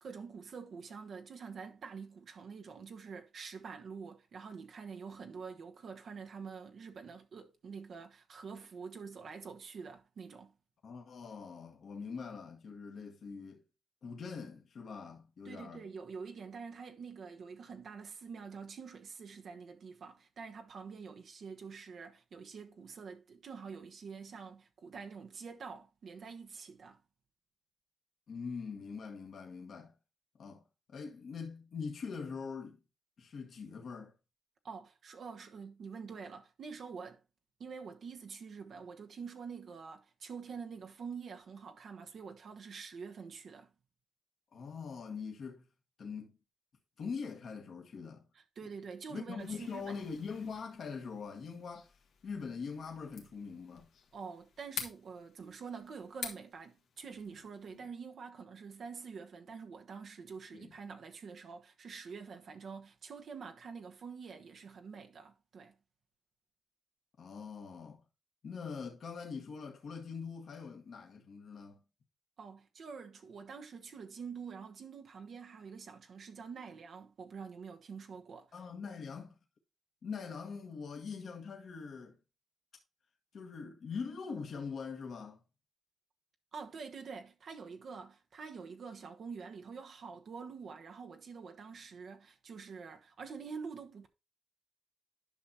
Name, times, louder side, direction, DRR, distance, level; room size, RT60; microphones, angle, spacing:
voice 1, 0.0-10.5 15.4-27.0 34.6-37.2 37.6-43.7 48.3-50.0 54.1-65.7 72.4-78.5 86.5-94.1, right 5 dB, 65° right, 1.1 m, -46 dB
voice 2, 10.8-13.6 14.0-15.8 28.3-29.9 30.3-30.6 30.9-32.8 33.2-34.1 44.5-45.7 46.0-46.4 47.0-48.2 49.1-53.9 57.7-57.8 60.5-60.7 67.2-68.0 68.4-71.8 78.5-79.4 80.0-82.2 83.3-85.4, left 5 dB, 60° left, 1.4 m, -43 dB
sound 1, 49.4-57.8, left 6 dB, 80° left, 1.6 m, -49 dB
10.5 x 5.9 x 2.8 m
cardioid pair, 65°, 0 cm